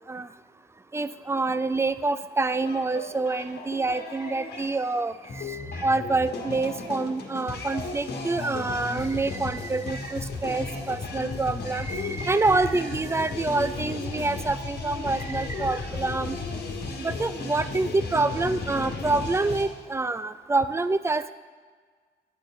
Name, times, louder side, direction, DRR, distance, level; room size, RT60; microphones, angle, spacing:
voice 1, 0.9-16.4 17.0-21.3, right 3 dB, 15° right, 14 dB, 0.3 m, -27 dB
sound 1, 2.6-19.6, left 3 dB, 60° left, 1.4 m, -35 dB
9.6 x 4.6 x 6.0 m, 1.6 s
cardioid pair, 85°, 19 cm